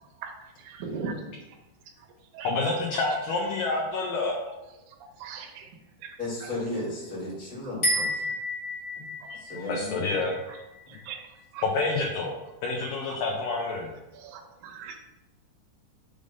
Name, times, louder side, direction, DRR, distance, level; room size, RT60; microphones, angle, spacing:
voice 1, 0.6-1.1 2.3-2.5 5.2-5.7 6.0-6.1 6.4-6.5 9.3-9.4 10.9-11.3 11.5-11.6 14.1-14.9, right 6 dB, 75° right, 1 dB, 1.9 m, -38 dB
voice 2, 2.4-4.4 9.6-10.4 11.6-12.3 12.6-13.9, left 3 dB, 75° left, -1 dB, 2.0 m, -28 dB
voice 3, 6.2-8.2 9.0-9.1 9.3-10.2 10.9-11.0, left 2 dB, 10° left, -7 dB, 0.3 m, -35 dB
sound 1, 7.8-11.2, left 1 dB, 35° left, 1.1 m, -31 dB
6.4 x 3.5 x 5.3 m, 1.0 s
omnidirectional pair, 4.7 m